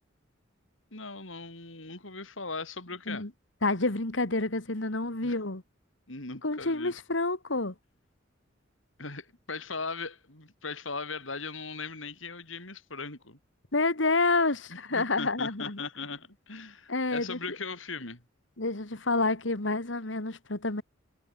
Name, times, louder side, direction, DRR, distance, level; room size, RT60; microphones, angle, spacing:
voice 1, 0.9-3.2 5.2-5.4 6.1-6.9 9.0-13.4 14.9-18.2, left 4 dB, 85° left, 6.5 m, -39 dB
voice 2, 3.6-5.6 6.4-7.7 13.7-15.8 16.9-17.4 18.6-20.8, left 3 dB, 70° left, 2.3 m, -28 dB
head